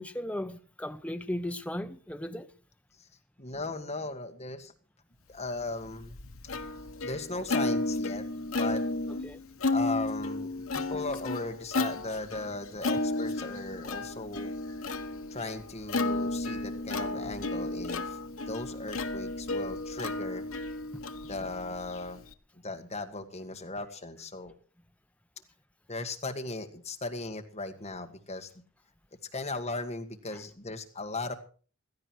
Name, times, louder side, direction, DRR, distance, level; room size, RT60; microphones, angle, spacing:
voice 1, 0.0-2.5 9.2-9.4 20.9-21.0, left 1 dB, 5° left, 0.7 m, -36 dB
voice 2, 3.4-4.7 5.3-6.2 7.0-8.8 9.7-14.5 15.3-18.2 18.5-20.5 21.3-22.2 22.5-24.5 25.9-28.5 29.3-31.3, left 2 dB, 30° left, 1.8 m, -37 dB
Plucked string instrument, 5.6-22.3, left 2 dB, 70° left, 1.1 m, -33 dB
16.5 x 13.5 x 4.6 m
head